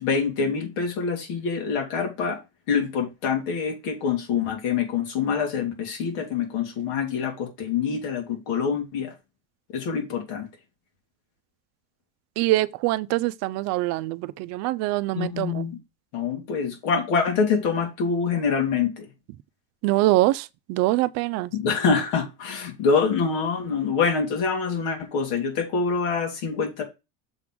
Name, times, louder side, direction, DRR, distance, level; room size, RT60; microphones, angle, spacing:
voice 1, 0.0-2.4 2.7-9.1 9.7-10.5 15.1-15.8 16.1-19.1 21.5-26.8, left 5 dB, 85° left, 2.4 m, -25 dB
voice 2, 12.4-15.7 19.8-21.5, right 18 dB, 50° right, 0.5 m, -24 dB
7.0 x 3.8 x 6.1 m
cardioid pair, 170°, 33 cm